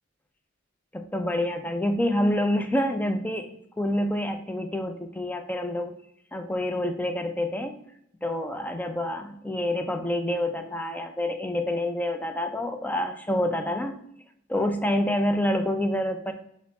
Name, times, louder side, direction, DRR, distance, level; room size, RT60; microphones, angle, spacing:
voice 1, 0.9-3.5 3.8-5.9 6.3-7.8 8.2-14.1 14.5-16.3, left 1 dB, 10° left, 6 dB, 0.3 m, -27 dB
5.6 x 2.0 x 4.1 m, 0.75 s
head